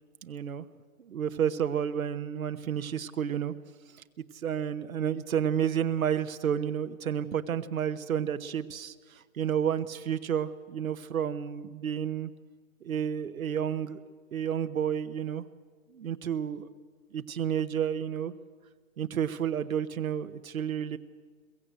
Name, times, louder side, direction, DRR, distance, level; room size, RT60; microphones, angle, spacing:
voice 1, 0.2-0.6 1.0-3.5 4.4-8.9 9.4-12.3 12.8-14.0 14.3-15.4 15.9-16.7 17.1-18.3 19.0-21.0, right 8 dB, 80° right, 11 dB, 1.0 m, -30 dB
22.5 x 15.5 x 7.9 m, 1.5 s
hypercardioid pair, 140°, 41 cm